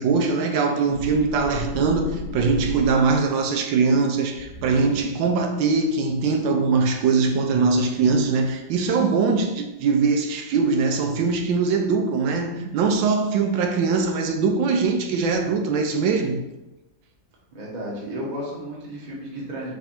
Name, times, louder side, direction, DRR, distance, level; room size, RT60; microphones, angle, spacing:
voice 1, 0.0-16.4, right 4 dB, 80° right, 1.3 m, -22 dB
sound 1, 0.9-3.4 4.3-5.3, left 2 dB, 50° left, 1.0 m, -35 dB
voice 2, 17.5-19.7, equal, 30° right, 0.9 m, -33 dB
3.5 x 3.4 x 4.2 m
omnidirectional pair, 2.0 m